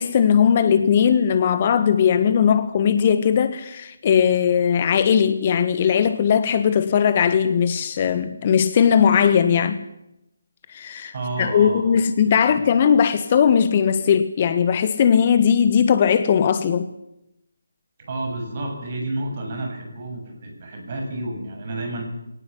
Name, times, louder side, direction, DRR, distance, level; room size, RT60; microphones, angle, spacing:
voice 1, 0.0-9.8 10.7-11.1 11.4-16.9, left 7 dB, 35° left, 1.3 m, -18 dB
voice 2, 11.1-12.7 18.0-22.0, right 2 dB, 40° right, 7.1 m, -31 dB
22.0 x 18.0 x 8.3 m
figure-of-eight pair, 150°, 0 cm